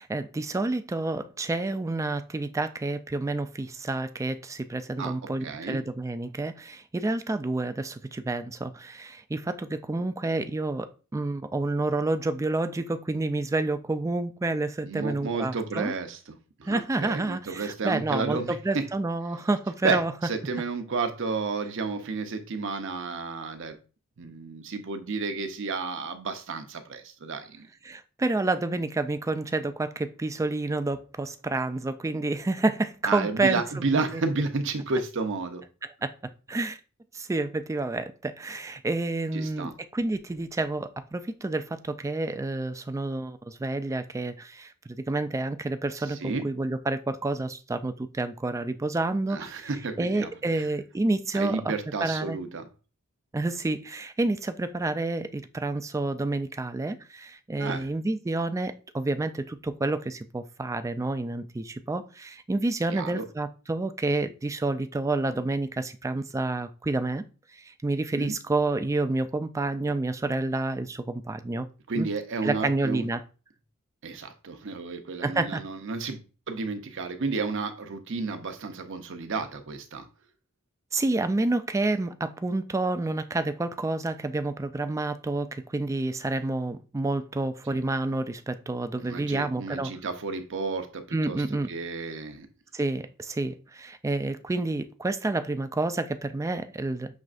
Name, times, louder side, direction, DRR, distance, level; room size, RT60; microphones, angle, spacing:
voice 1, 0.0-15.9 16.7-20.1 27.8-33.6 33.9-34.2 35.8-36.1 36.5-36.8 37.1-49.7 50.0-51.7 52.0-52.4 53.3-67.2 67.5-71.7 72.0-72.1 72.4-73.2 75.2-75.6 80.9-89.9 91.1-91.7 92.7-97.1, right 2 dB, 15° right, 0.3 m, -29 dB
voice 2, 5.4-5.8 14.8-18.8 19.8-23.8 24.2-27.7 33.0-35.6 39.3-39.7 46.1-46.5 49.3-50.3 50.6-50.7 51.3-52.7 57.6-57.9 62.9-63.2 68.2-68.3 71.9-73.1 74.0-80.1 87.7-87.8 89.0-92.5, right 4 dB, 60° right, 0.7 m, -32 dB
6.2 x 3.2 x 2.5 m
head